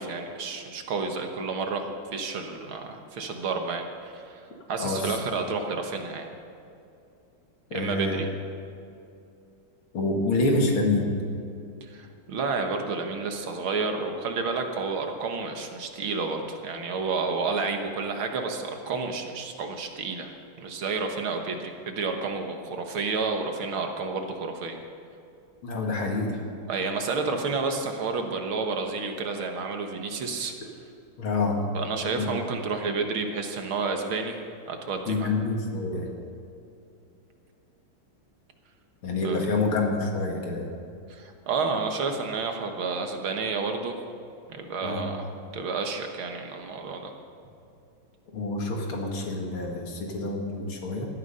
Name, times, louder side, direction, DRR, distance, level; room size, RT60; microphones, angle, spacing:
voice 1, 0.0-4.4 4.7-6.3 7.7-8.3 11.8-24.8 26.7-30.5 31.7-34.4 34.7-35.3 39.2-39.5 41.1-44.0 44.5-45.3 45.5-47.1, right 4 dB, 70° right, 4 dB, 2.1 m, -30 dB
voice 2, 4.8-5.2 7.7-8.2 9.9-11.2 25.6-26.4 31.2-31.6 32.2-32.3 35.1-36.1 39.0-40.8 44.8-45.1 48.3-51.1, left 2 dB, 70° left, 1 dB, 2.8 m, -27 dB
17.5 x 13.0 x 5.5 m, 2.6 s
omnidirectional pair, 2.4 m